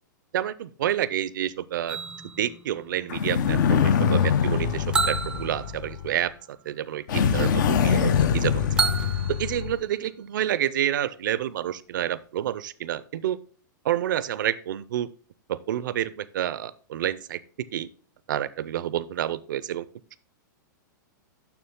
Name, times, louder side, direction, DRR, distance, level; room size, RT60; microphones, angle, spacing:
voice 1, 0.3-2.0 2.4-8.8 9.3-13.4 13.8-15.1 15.5-17.9 18.3-19.9, right 11 dB, 75° right, 16 dB, 0.5 m, -29 dB
sound 1, 1.9-3.9 4.9-6.7 8.8-10.3, right 5 dB, 10° right, 0.4 m, -31 dB
sound 2, 3.1-6.2 7.1-9.8, left 7 dB, 70° left, 0.7 m, -23 dB
7.0 x 6.3 x 3.6 m, 0.41 s
hypercardioid pair, 130°, 11 cm